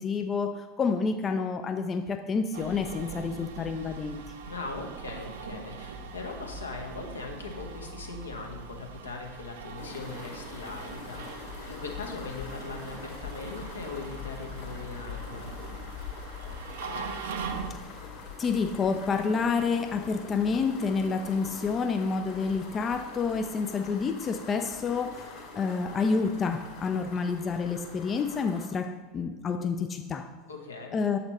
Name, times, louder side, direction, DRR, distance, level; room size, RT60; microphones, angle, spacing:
voice 1, 0.0-4.2 17.7-17.8 18.4-30.3 30.9-31.2, left 5 dB, 25° left, 7 dB, 0.3 m, -29 dB
sound 1, 2.5-17.7, right 4 dB, 60° right, 0.5 m, -41 dB
voice 2, 4.4-15.5 30.5-31.0, left 4 dB, 75° left, 2 dB, 0.8 m, -40 dB
sound 2, 9.8-28.7, left 4 dB, 55° left, 1.7 m, -44 dB
7.6 x 4.1 x 4.1 m, 1.3 s
figure-of-eight pair, 80°, 0 cm